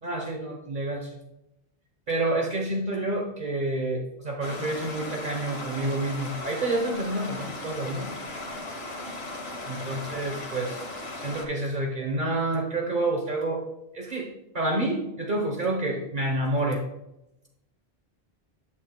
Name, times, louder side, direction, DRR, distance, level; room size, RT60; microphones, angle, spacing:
voice 1, 0.0-1.1 2.1-8.1 9.7-10.8 11.2-13.6 13.9-16.8, right 2 dB, 50° right, 1 dB, 1.2 m, -28 dB
Stream, 4.4-11.5, left 2 dB, 75° left, 1.6 m, -37 dB
8.9 x 8.5 x 2.2 m, 0.88 s
omnidirectional pair, 1.0 m